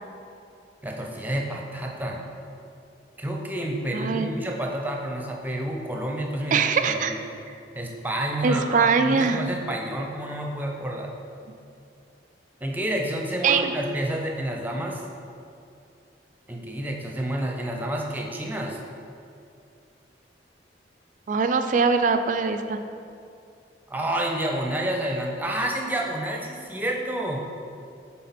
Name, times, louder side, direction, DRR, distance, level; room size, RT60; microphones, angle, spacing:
voice 1, 0.8-2.3 3.2-7.2 7.7-11.1 12.6-15.0 16.5-18.8 23.9-27.4, right 1 dB, 10° right, 0 dB, 0.6 m, -29 dB
voice 2, 3.9-4.3 6.5-7.1 8.4-9.4 13.4-13.7 21.3-22.8, right 5 dB, 45° right, 8 dB, 0.4 m, -22 dB
8.4 x 3.6 x 4.2 m, 2.5 s
head